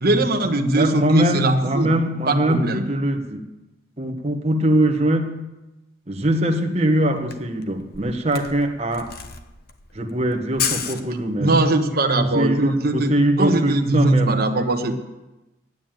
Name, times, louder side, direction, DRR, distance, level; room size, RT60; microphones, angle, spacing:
voice 1, 0.0-1.9 2.3-2.8 11.4-13.1 13.4-14.9, right 2 dB, 50° right, 5 dB, 1.2 m, -20 dB
voice 2, 0.7-3.5 4.0-5.5 6.1-9.1 9.9-11.6 12.2-14.4, right 1 dB, 30° right, 5 dB, 1.1 m, -22 dB
Camera, 6.8-6.9 7.1-11.7, left 7 dB, 50° left, 0.9 m, -31 dB
9.5 x 9.1 x 9.0 m, 1.0 s
head